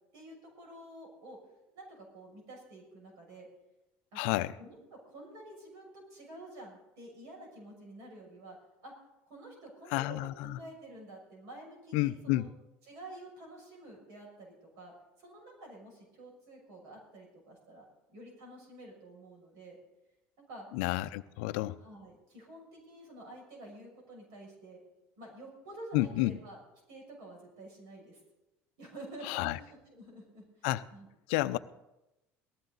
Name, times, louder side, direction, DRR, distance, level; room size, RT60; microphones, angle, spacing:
voice 1, 0.1-1.4 1.7-3.5 4.1-4.2 4.6-8.6 8.8-8.9 9.3-12.5 12.9-17.8 18.1-19.8 20.4-20.7 21.8-24.8 25.2-26.6 26.9-28.2 28.8-31.1, right 1 dB, 70° right, 0 dB, 6.6 m, -49 dB
voice 2, 4.2-4.5 9.9-10.6 11.9-12.5 20.7-21.8 25.9-26.4 29.2-29.6 30.6-30.8 31.3-31.6, left 17 dB, 80° left, 13 dB, 0.6 m, -30 dB
18.5 x 14.0 x 4.0 m, 0.95 s
supercardioid pair, 115°, 6 cm